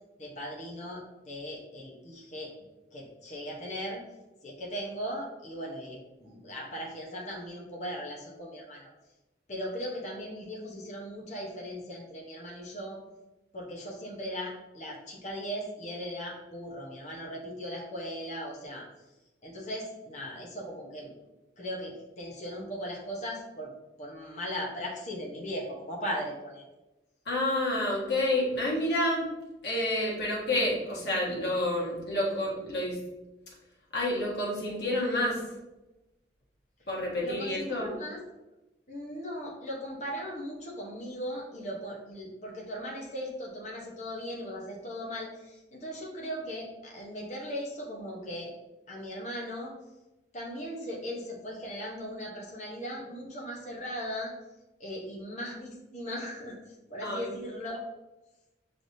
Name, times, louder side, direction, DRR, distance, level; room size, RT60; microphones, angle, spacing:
voice 1, 0.2-2.5 2.9-4.0 4.4-8.9 9.5-13.0 13.5-18.8 19.4-21.1 21.6-23.7 24.0-26.6 37.2-38.2 38.9-48.5 48.9-49.7 50.3-54.3 54.8-57.8, equal, 40° left, -3 dB, 0.9 m, -38 dB
voice 2, 27.2-29.3 29.6-33.0 33.9-35.4 36.9-37.9 57.0-57.3, left 1 dB, 70° left, -5 dB, 1.6 m, -29 dB
5.8 x 3.3 x 2.7 m, 1.0 s
head